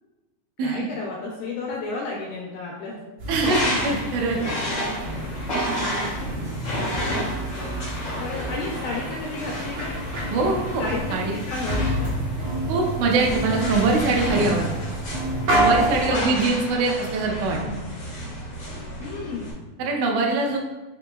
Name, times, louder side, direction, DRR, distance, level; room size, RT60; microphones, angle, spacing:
voice 1, 0.6-3.2 3.5-3.8 7.4-7.8 8.2-9.9 10.8-12.1 15.9-16.5 19.0-19.5, left 3 dB, 85° left, -2 dB, 2.1 m, -32 dB
sound 1, 3.2-16.2, right 1 dB, 55° right, 1.7 m, -29 dB
sound 2, 3.3-19.5, equal, 60° left, 1.2 m, -31 dB
voice 2, 3.3-4.4 5.5-5.6 10.3-11.3 12.7-14.7 15.5-17.6 19.8-20.6, right 3 dB, 80° right, 0 dB, 2.1 m, -23 dB
5.3 x 2.9 x 2.3 m, 1.1 s
omnidirectional pair, 3.7 m